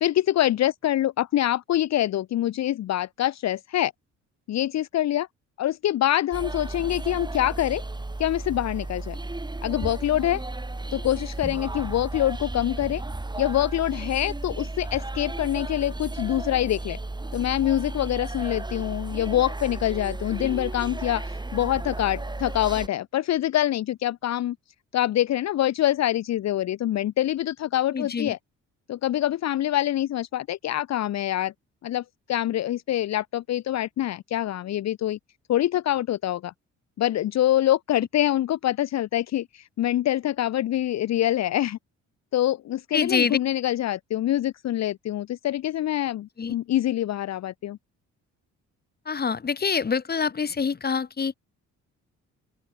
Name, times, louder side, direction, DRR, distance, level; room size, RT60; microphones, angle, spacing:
voice 1, 0.0-3.9 4.5-5.3 5.6-7.8 8.2-9.2 9.6-10.4 10.9-13.0 13.4-17.0 17.3-24.6 24.9-28.4 28.9-31.5 31.8-32.0 32.3-35.2 35.5-36.5 37.0-41.8 42.3-47.8, left 13 dB, 60° left, 0.8 m, -25 dB
sound 1, 6.3-22.9, right 2 dB, 15° right, 4.9 m, -34 dB
voice 2, 27.9-28.3 42.9-43.4 46.4-46.5 49.0-51.3, left 5 dB, 30° left, 1.7 m, -26 dB
open air
cardioid pair, 90°, 30 cm